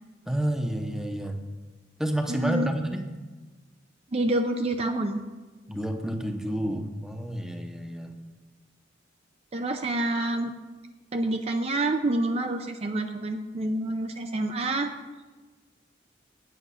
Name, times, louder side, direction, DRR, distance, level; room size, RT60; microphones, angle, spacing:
voice 1, 0.3-1.4 2.0-3.0 5.7-8.2, right 1 dB, 5° right, 5 dB, 0.8 m, -29 dB
voice 2, 2.3-2.7 4.1-5.2 9.5-10.5 11.1-14.9, right 2 dB, 35° right, 5 dB, 0.5 m, -27 dB
8.7 x 8.3 x 5.6 m, 1.3 s
head